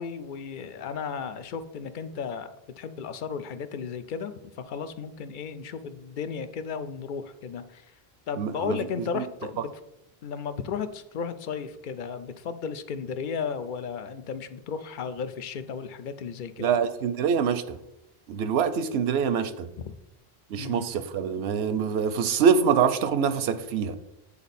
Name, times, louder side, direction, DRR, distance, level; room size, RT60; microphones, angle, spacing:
voice 1, 0.0-7.9 8.3-9.7 10.2-16.7 19.8-19.9 20.6-20.9, left 6 dB, 60° left, 11 dB, 0.6 m, -34 dB
voice 2, 8.4-8.8 9.1-9.2 16.6-17.8 18.3-19.7 20.5-23.9, right 7 dB, 85° right, 11 dB, 0.8 m, -25 dB
8.6 x 4.0 x 4.1 m, 0.85 s
omnidirectional pair, 1.0 m